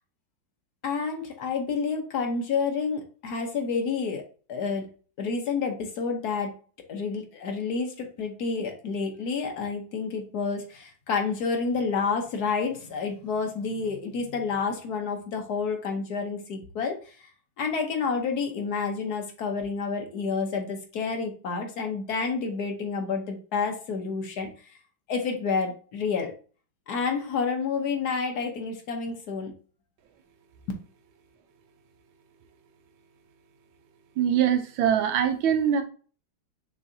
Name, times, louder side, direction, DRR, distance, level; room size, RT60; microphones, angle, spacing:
voice 1, 0.8-4.2 4.5-4.9 5.2-6.5 6.9-17.3 17.6-24.5 25.1-26.4 26.9-29.5, left 5 dB, 60° left, 4 dB, 1.2 m, -29 dB
voice 2, 34.2-35.8, right 9 dB, 80° right, 8 dB, 1.5 m, -23 dB
6.3 x 3.1 x 2.7 m, 0.39 s
omnidirectional pair, 2.2 m